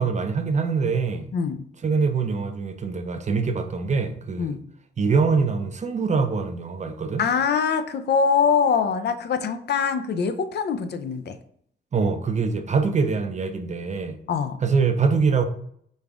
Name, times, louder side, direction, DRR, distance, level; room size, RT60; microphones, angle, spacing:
voice 1, 0.0-1.3 1.8-4.6 5.0-7.2 11.9-14.2 14.6-15.4, right 5 dB, 40° right, 0.6 m, -24 dB
voice 2, 7.2-11.4 14.3-14.6, left 6 dB, 60° left, 0.5 m, -23 dB
5.2 x 2.5 x 3.4 m
cardioid pair, 80°, 19 cm